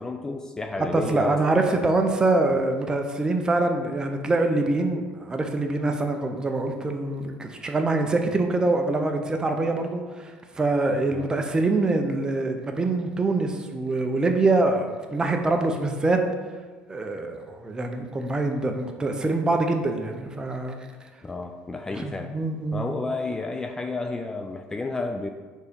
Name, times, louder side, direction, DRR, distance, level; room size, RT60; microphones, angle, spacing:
voice 1, 0.0-1.4 1.7-1.9 11.1-11.3 21.2-22.3 22.7-25.3, left 3 dB, 15° left, 4 dB, 0.4 m, -31 dB
voice 2, 0.9-16.2 16.9-20.8 21.9-22.8, right 2 dB, 20° right, 4 dB, 0.7 m, -24 dB
4.6 x 4.1 x 5.2 m, 1.4 s
cardioid pair, 120°, 4 cm